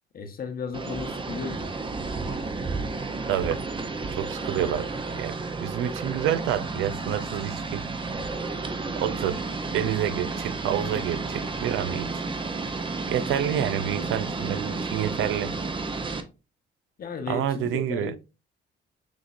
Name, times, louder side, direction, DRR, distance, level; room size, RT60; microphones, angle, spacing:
voice 1, 0.1-1.7 17.0-18.2, left 4 dB, 50° left, 1.0 m, -34 dB
sound 1, 0.7-16.2, right 3 dB, 25° right, 0.7 m, -32 dB
voice 2, 3.3-3.6 4.2-7.8 9.0-12.2 13.1-15.5 17.3-18.2, right 10 dB, 85° right, 0.4 m, -28 dB
6.1 x 2.9 x 2.5 m
cardioid pair, 90°, 20 cm